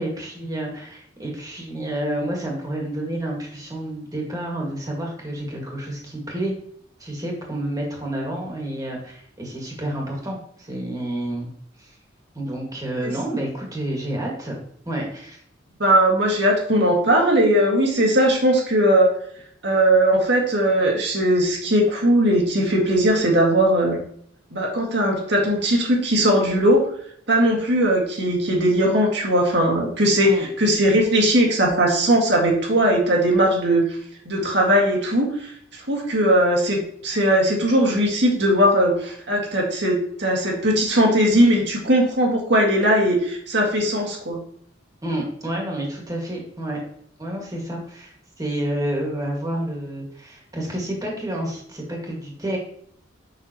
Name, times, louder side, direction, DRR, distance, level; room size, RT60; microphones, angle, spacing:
voice 1, 0.0-6.5 7.0-11.5 11.8-12.0 12.3-14.6 14.9-15.4 30.2-30.5 45.0-46.8 47.2-52.6, right 1 dB, 20° right, -1 dB, 1.9 m, -29 dB
voice 2, 15.8-19.1 19.6-24.0 24.5-26.8 27.3-34.0 34.3-35.5 35.9-44.4, right 1 dB, 60° right, 0 dB, 1.9 m, -19 dB
6.7 x 5.9 x 3.0 m, 0.65 s
head